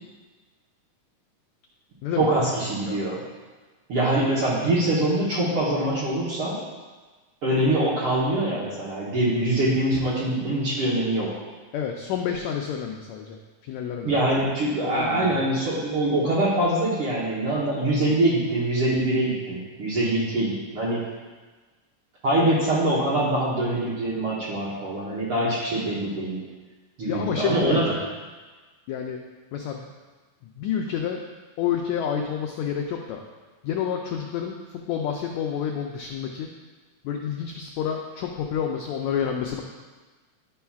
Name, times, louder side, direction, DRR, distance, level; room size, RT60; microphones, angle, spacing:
voice 1, 2.2-3.2 3.9-6.6 7.4-11.3 14.0-21.0 22.2-26.4 27.0-27.9, right 1 dB, 65° right, -7 dB, 1.5 m, -24 dB
voice 2, 11.7-13.4 13.6-14.1 14.8-15.4 27.0-28.1 28.9-29.2 29.5-29.8 30.6-31.2 31.6-33.2 33.6-36.5 37.0-39.6, left 8 dB, 90° left, 1 dB, 1.6 m, -29 dB
11.0 x 5.6 x 2.3 m, 1.3 s
omnidirectional pair, 3.8 m